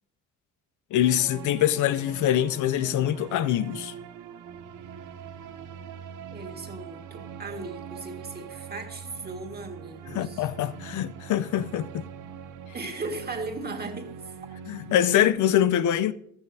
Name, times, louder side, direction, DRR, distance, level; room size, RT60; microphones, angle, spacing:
voice 1, 0.9-3.9 10.1-12.1 14.7-16.1, left 11 dB, 80° left, 0.6 m, -24 dB
sound 1, 1.0-15.3, right 7 dB, 85° right, 0.9 m, -42 dB
voice 2, 6.3-10.5 12.7-14.3, right 3 dB, 30° right, 1.8 m, -37 dB
15.0 x 13.0 x 2.7 m
cardioid pair, 90°, 30 cm